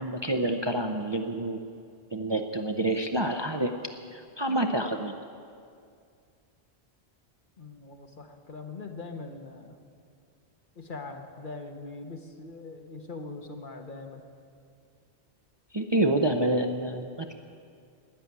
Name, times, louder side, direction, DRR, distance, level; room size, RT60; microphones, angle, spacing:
voice 1, 0.0-1.6 2.1-3.7 4.1-5.2 15.7-17.3, right 1 dB, 30° right, 4 dB, 0.6 m, -28 dB
voice 2, 7.6-9.8 10.7-14.2, left 3 dB, 50° left, 5 dB, 1.3 m, -42 dB
13.5 x 10.0 x 9.5 m, 2.3 s
omnidirectional pair, 1.1 m